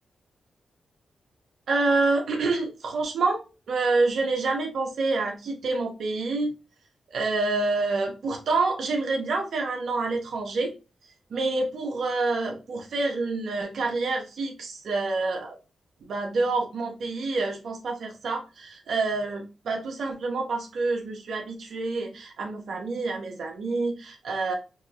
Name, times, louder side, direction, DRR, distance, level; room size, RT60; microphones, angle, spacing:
voice 1, 1.7-3.4 3.7-6.5 7.1-10.7 11.3-15.6 16.0-24.5, right 3 dB, 75° right, 2 dB, 1.0 m, -27 dB
5.2 x 3.1 x 2.4 m, 0.30 s
cardioid pair, 60°, 0 cm